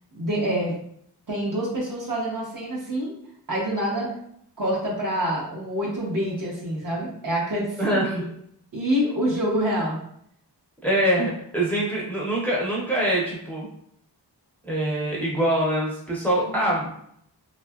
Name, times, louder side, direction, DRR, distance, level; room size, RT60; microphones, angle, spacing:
voice 1, 0.1-0.7 1.3-3.1 3.5-4.1 4.6-8.3 8.7-10.0 16.5-16.7, equal, 50° right, -4 dB, 0.8 m, -26 dB
voice 2, 7.8-8.2 10.8-13.7 14.6-16.9, right 1 dB, 5° left, -4 dB, 0.5 m, -24 dB
2.6 x 2.2 x 2.3 m, 0.69 s
wide cardioid pair, 110°, 41 cm